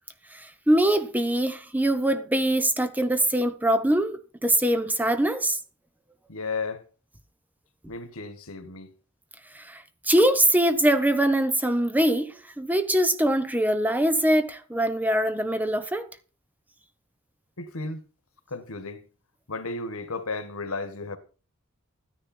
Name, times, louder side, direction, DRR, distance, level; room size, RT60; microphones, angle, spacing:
voice 1, 0.3-5.6 9.5-16.1, right 1 dB, 10° right, 0.9 m, -23 dB
voice 2, 6.3-6.9 7.9-8.9 17.6-18.0 18.5-19.0 19.5-21.2, left 3 dB, 85° left, 1.6 m, -34 dB
13.0 x 10.0 x 4.4 m
head